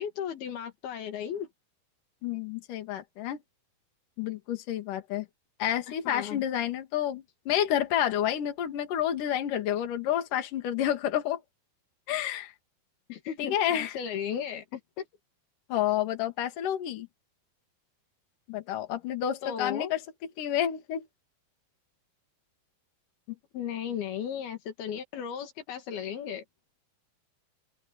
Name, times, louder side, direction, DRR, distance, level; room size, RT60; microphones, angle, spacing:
voice 1, 0.0-1.5 6.1-6.5 13.1-15.1 19.4-19.9 23.3-26.4, left 8 dB, 80° left, 3.9 m, -35 dB
voice 2, 2.2-3.4 4.2-5.3 5.6-11.4 12.1-12.5 13.4-13.9 15.7-17.1 18.5-20.0 20.4-21.1, left 11 dB, 60° left, 3.5 m, -29 dB
open air
omnidirectional pair, 4.4 m